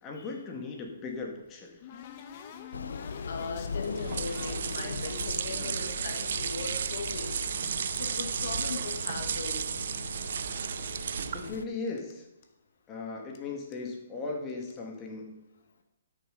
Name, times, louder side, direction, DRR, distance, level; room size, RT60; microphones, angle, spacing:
voice 1, 0.0-1.9 11.3-12.3 12.9-15.4, left 3 dB, 20° left, 1 dB, 1.9 m, -38 dB
sound 1, 0.9-6.4 6.8-8.6 8.9-9.6 9.9-11.2 11.5-11.6 11.9-12.1 12.4-12.5 13.3-13.4 13.7-14.0 14.5-14.8, left 8 dB, 40° left, 1.1 m, -48 dB
Thunder / Rain, 2.7-11.6, left 5 dB, 85° left, 0.7 m, -40 dB
voice 2, 3.2-7.4 8.0-9.6, left 4 dB, 65° left, 5 dB, 1.4 m, -39 dB
sound 2, 3.8-11.6, right 7 dB, 65° right, 0.6 m, -34 dB
12.5 x 6.7 x 5.3 m, 0.91 s
hypercardioid pair, 150°, 0 cm